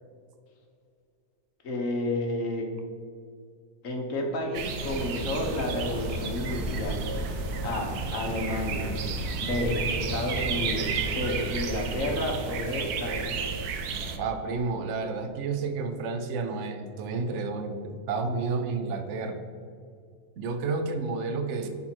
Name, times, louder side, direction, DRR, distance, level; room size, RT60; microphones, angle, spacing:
voice 1, 1.6-2.7 3.8-7.0 7.6-8.9 9.4-13.4, left 1 dB, 60° left, 2 dB, 1.6 m, -31 dB
sound 1, 4.5-14.2, right 5 dB, 85° right, 1.2 m, -33 dB
sound 2, 4.7-12.1, equal, 15° left, 2.0 m, -36 dB
voice 2, 14.2-19.4 20.4-21.7, right 4 dB, 60° right, 7 dB, 1.0 m, -31 dB
9.8 x 4.3 x 4.5 m, 2.2 s
omnidirectional pair, 1.6 m